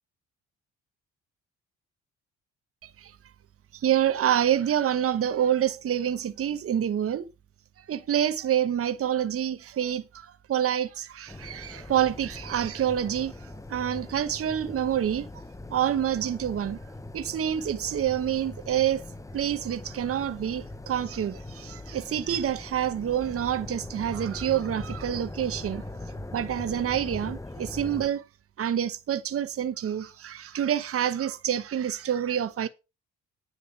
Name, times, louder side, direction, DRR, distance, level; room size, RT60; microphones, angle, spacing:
voice 1, 3.7-7.3 7.9-13.3 13.7-15.3 15.7-16.8 17.1-19.0 19.3-25.8 26.3-28.2 28.6-32.7, right 10 dB, 50° right, 1.1 m, -27 dB
sound 1, 11.3-28.1, left 2 dB, 10° left, 0.9 m, -41 dB
9.9 x 6.7 x 5.9 m
cardioid pair, 85°, 30 cm